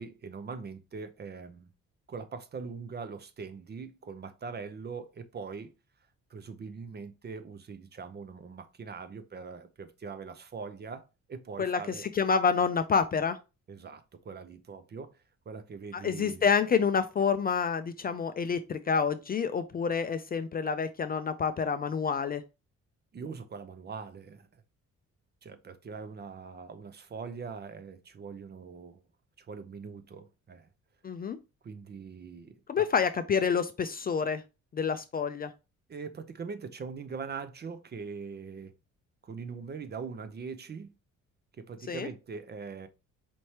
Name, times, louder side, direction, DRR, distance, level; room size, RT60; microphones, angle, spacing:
voice 1, 0.0-1.7 2.1-5.7 6.3-12.1 13.7-15.2 15.5-16.4 23.1-24.5 25.4-29.0 29.4-30.7 31.6-32.9 35.9-38.7 39.2-40.9 41.6-42.9, right 5 dB, 35° right, 0.6 m, -42 dB
voice 2, 12.1-13.4 15.9-22.4 31.0-31.4 32.7-34.4 34.7-35.5 41.9-42.1, left 6 dB, 30° left, 0.4 m, -28 dB
4.3 x 3.2 x 2.8 m
cardioid pair, 90°, 30 cm